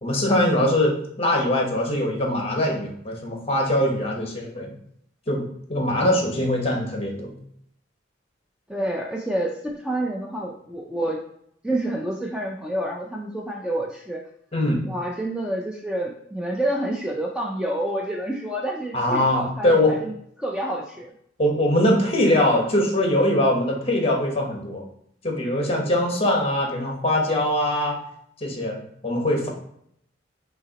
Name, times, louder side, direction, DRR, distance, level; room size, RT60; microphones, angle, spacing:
voice 1, 0.0-4.7 5.3-7.3 14.5-14.8 18.9-19.9 21.4-24.8 25.2-28.0 28.4-29.5, left 1 dB, 30° left, 0 dB, 1.0 m, -22 dB
voice 2, 8.7-11.2 11.6-14.2 14.8-21.1, right 1 dB, 5° right, -1 dB, 0.4 m, -28 dB
5.9 x 2.8 x 2.9 m, 0.69 s
head